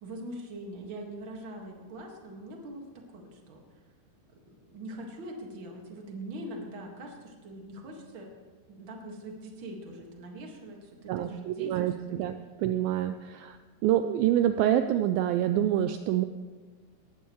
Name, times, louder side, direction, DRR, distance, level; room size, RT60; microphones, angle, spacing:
voice 1, 0.0-3.6 4.3-8.3 8.7-12.3, right 1 dB, 45° right, 1 dB, 1.7 m, -43 dB
voice 2, 11.1-13.6 13.8-16.3, right 11 dB, 85° right, 9 dB, 2.1 m, -27 dB
19.0 x 14.0 x 3.1 m, 1.4 s
omnidirectional pair, 4.6 m